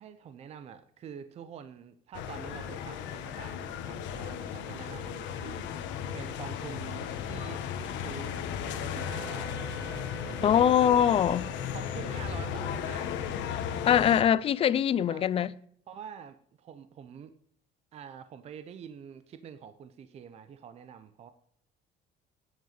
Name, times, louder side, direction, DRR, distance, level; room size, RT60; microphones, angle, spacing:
voice 1, 0.0-9.5 10.2-10.9 11.3-11.4 11.7-13.2 15.1-15.2 15.9-17.3 17.9-21.3, right 8 dB, 35° right, 0.6 m, -46 dB
sound 1, 2.1-14.2, left 8 dB, 75° left, 1.3 m, -35 dB
Wind instrument woodwind instrument, 9.0-14.1, right 4 dB, 10° right, 0.9 m, -48 dB
voice 2, 10.4-11.4 13.9-15.5, left 9 dB, 30° left, 0.3 m, -23 dB
9.4 x 9.3 x 4.0 m
cardioid pair, 175°, 19 cm